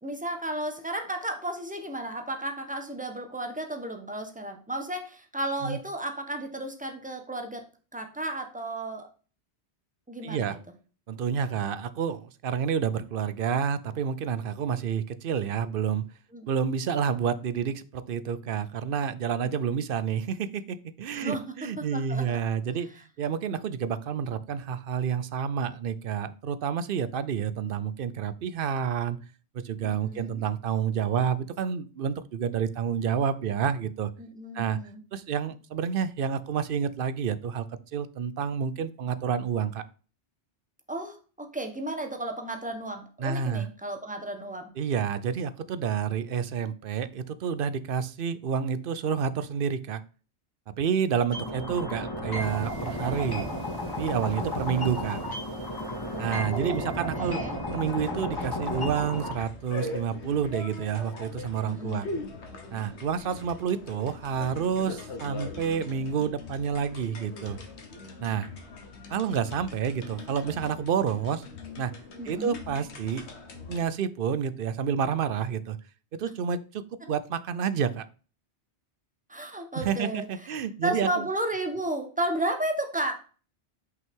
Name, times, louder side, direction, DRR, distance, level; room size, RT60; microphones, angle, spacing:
voice 1, 0.0-7.7 7.9-9.1 10.1-10.6 16.3-16.5 21.1-21.4 21.8-22.4 29.8-30.4 34.2-35.0 40.9-44.7 51.4-51.5 56.1-57.6 61.6-62.0 72.2-72.6 77.0-77.1 79.3-80.5 80.8-83.1, right 1 dB, 5° right, 5 dB, 1.1 m, -33 dB
voice 2, 10.2-10.6 11.1-16.0 16.5-22.9 23.2-29.2 29.5-34.1 34.5-34.8 35.1-37.7 37.9-39.8 43.2-43.7 44.8-50.0 50.8-53.5 54.0-55.2 56.2-57.4 57.7-62.1 62.7-67.6 68.2-68.5 69.1-71.4 71.8-71.9 72.2-73.2 73.7-75.8 76.1-78.1 79.7-81.3, right 7 dB, 60° right, 14 dB, 0.7 m, -29 dB
sound 1, 51.3-59.3, left 1 dB, 20° left, 2.0 m, -33 dB
sound 2, 52.4-57.7, right 3 dB, 80° right, 1.6 m, -50 dB
sound 3, 57.5-73.9, left 3 dB, 70° left, 1.4 m, -42 dB
6.0 x 5.5 x 3.6 m, 0.37 s
omnidirectional pair, 1.2 m